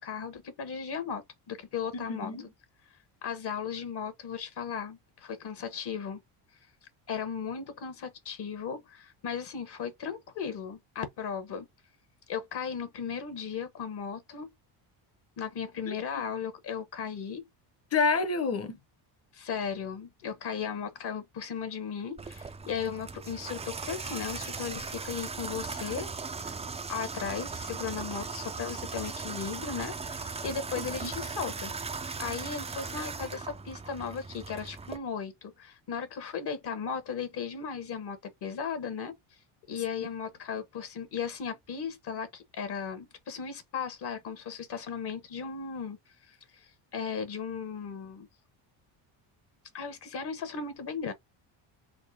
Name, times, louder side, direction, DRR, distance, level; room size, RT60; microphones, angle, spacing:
voice 1, 0.0-2.3 3.2-6.2 7.1-11.7 12.3-14.5 15.4-17.5 19.3-26.1 26.4-26.6 26.9-31.7 32.2-39.2 39.7-46.0 46.2-48.3 49.7-51.1, left 6 dB, 50° left, 1.1 m, -36 dB
voice 2, 1.9-2.5 15.9-16.0 17.9-18.8 31.0-31.1, left 4 dB, 30° left, 0.8 m, -28 dB
Water tap faucet / Bathtub (filling or washing), 22.2-35.0, right 4 dB, 15° right, 0.4 m, -38 dB
3.7 x 2.1 x 3.7 m
cardioid pair, 95°, 50 cm